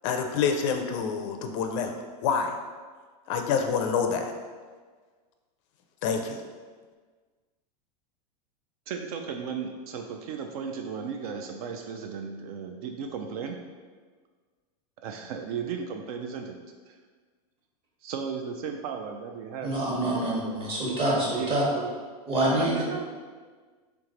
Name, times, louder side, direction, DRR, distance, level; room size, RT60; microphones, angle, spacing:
voice 1, 0.0-1.9 2.2-2.5 3.3-4.3 6.0-6.4, left 6 dB, 50° left, 5 dB, 0.4 m, -27 dB
voice 2, 8.9-13.6 15.0-16.6 16.9-17.0 18.0-19.7 20.0-20.7 21.3-21.9 22.6-23.1, right 6 dB, 65° right, 4 dB, 0.4 m, -35 dB
voice 3, 19.6-21.6 22.3-22.8, right 1 dB, 30° right, -5 dB, 1.2 m, -26 dB
3.4 x 3.1 x 3.8 m, 1.5 s
supercardioid pair, 145°, 21 cm